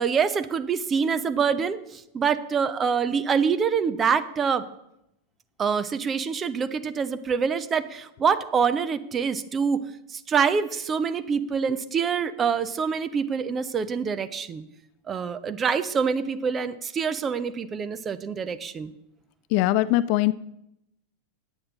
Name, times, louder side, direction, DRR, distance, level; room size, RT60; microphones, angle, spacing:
voice 1, 0.0-4.6 5.6-9.8 10.1-14.6 15.1-18.9, right 6 dB, 20° right, 12 dB, 0.6 m, -25 dB
voice 2, 19.5-20.3, left 16 dB, 45° left, 17 dB, 0.3 m, -21 dB
8.9 x 8.6 x 3.8 m, 0.82 s
figure-of-eight pair, 90°, 0 cm